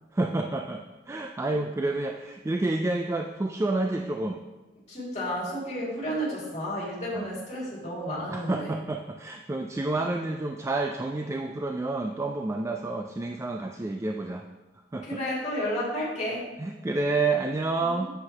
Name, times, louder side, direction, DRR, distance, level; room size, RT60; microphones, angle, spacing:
voice 1, 0.1-4.4 7.1-7.3 8.3-14.4 14.9-15.1 16.6-18.1, right 2 dB, 15° right, 3 dB, 0.3 m, -29 dB
voice 2, 4.9-8.8 15.0-16.4 17.8-18.0, equal, 40° left, -6 dB, 2.5 m, -32 dB
7.8 x 7.7 x 2.9 m, 1.1 s
head